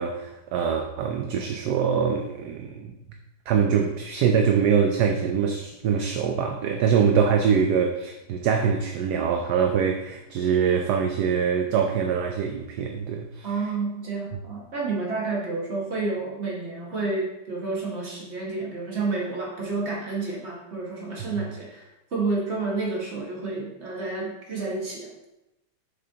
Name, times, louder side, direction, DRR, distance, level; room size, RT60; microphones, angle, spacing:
voice 1, 0.0-2.9 3.5-13.5, right 7 dB, 70° right, 4 dB, 1.1 m, -24 dB
voice 2, 13.4-25.1, right 3 dB, 40° right, -3 dB, 1.9 m, -30 dB
7.6 x 6.9 x 2.9 m, 0.92 s
omnidirectional pair, 1.9 m